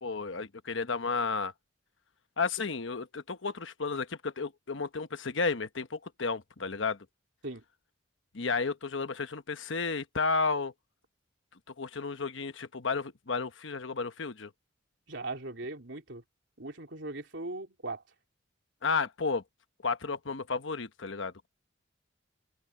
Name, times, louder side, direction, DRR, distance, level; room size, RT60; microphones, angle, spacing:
voice 1, 0.0-1.5 2.4-7.0 8.3-10.7 11.8-14.5 18.8-19.4 19.8-21.5, left 4 dB, 80° left, 1.1 m, -32 dB
voice 2, 15.1-16.2 16.6-18.0, right 2 dB, 70° right, 3.3 m, -39 dB
open air
head